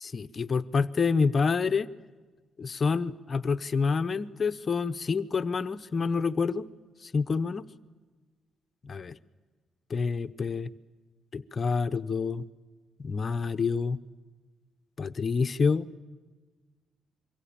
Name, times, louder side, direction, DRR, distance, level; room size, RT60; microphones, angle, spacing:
voice 1, 0.0-1.9 2.6-6.7 7.0-7.7 8.8-9.1 9.9-10.7 11.3-12.4 13.0-14.0 15.0-15.9, left 5 dB, 35° left, 12 dB, 0.8 m, -27 dB
27.0 x 23.5 x 8.7 m, 1.4 s
cardioid pair, 110°, 0 cm